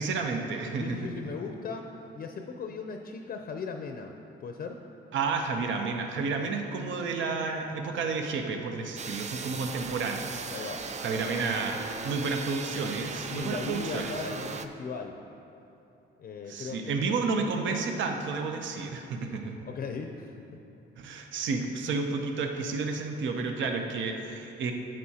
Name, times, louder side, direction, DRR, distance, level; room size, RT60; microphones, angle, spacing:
voice 1, 0.0-1.0 5.1-10.4 11.0-14.1 16.5-19.5 21.0-24.7, right 4 dB, 70° right, 4 dB, 0.7 m, -31 dB
voice 2, 0.8-4.1 4.4-4.8 10.5-10.8 13.3-15.1 16.2-17.5 19.7-20.4, left 5 dB, 50° left, 4 dB, 0.5 m, -38 dB
sound 1, 9.0-14.7, right 5 dB, 35° right, 0.4 m, -38 dB
10.5 x 7.5 x 2.8 m, 2.9 s
cardioid pair, 90°, 20 cm